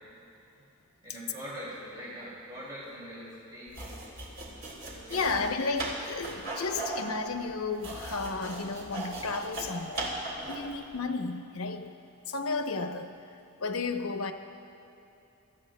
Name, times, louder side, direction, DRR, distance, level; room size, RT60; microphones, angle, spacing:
voice 1, 1.0-4.0 4.4-4.6 4.9-5.5, equal, 20° right, -8 dB, 2.7 m, -43 dB
sound 1, 3.7-10.7, right 2 dB, 65° right, 3.2 m, -38 dB
voice 2, 5.1-11.9 12.3-13.1 13.6-14.3, left 4 dB, 85° left, 6 dB, 0.8 m, -33 dB
24.0 x 13.5 x 2.2 m, 2.9 s
head